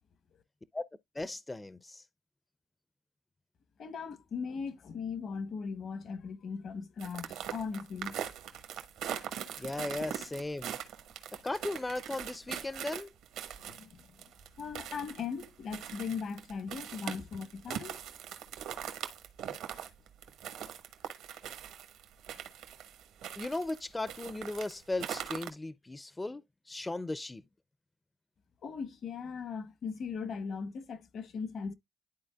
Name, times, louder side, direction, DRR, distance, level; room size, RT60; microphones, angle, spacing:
voice 1, 1.1-2.1 9.6-10.8 11.4-13.1 23.4-27.4, left 2 dB, 15° left, 0.4 m, -37 dB
voice 2, 3.8-8.2 13.6-14.1 14.6-18.0 28.6-31.8, left 5 dB, 60° left, 1.0 m, -39 dB
sound 1, 7.0-23.8 24.1-25.5, right 9 dB, 90° right, 1.2 m, -41 dB
11.5 x 4.1 x 2.2 m
cardioid pair, 90°, 0 cm